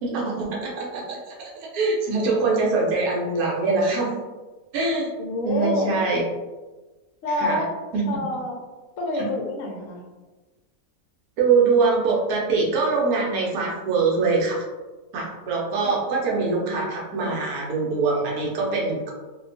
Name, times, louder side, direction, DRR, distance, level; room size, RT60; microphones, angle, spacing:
voice 1, 0.0-1.2 1.7-4.1 4.7-5.1 5.4-6.2 7.4-7.6 7.9-8.0 11.4-14.6 15.1-19.1, right 4 dB, 90° right, -3 dB, 1.1 m, -23 dB
voice 2, 5.2-5.9 7.2-7.7 8.1-8.6 9.0-10.0 15.8-15.9 16.2-16.3, left 2 dB, 70° left, 0 dB, 0.9 m, -28 dB
2.8 x 2.2 x 2.5 m, 1.2 s
omnidirectional pair, 1.5 m